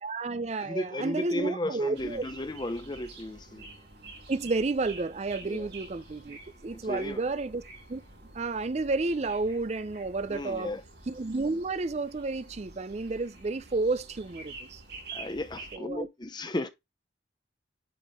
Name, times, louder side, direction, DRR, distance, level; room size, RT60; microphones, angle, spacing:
voice 1, 0.0-2.3 4.3-7.6 7.9-8.0 8.3-10.7 11.1-14.8 15.7-16.1, right 3 dB, 35° right, 0.5 m, -31 dB
voice 2, 0.6-3.7 5.4-5.7 6.7-7.2 10.3-10.8 15.1-16.7, left 1 dB, 25° left, 0.7 m, -34 dB
sound 1, 1.9-15.8, right 3 dB, 70° right, 4.6 m, -48 dB
9.2 x 3.7 x 3.5 m
head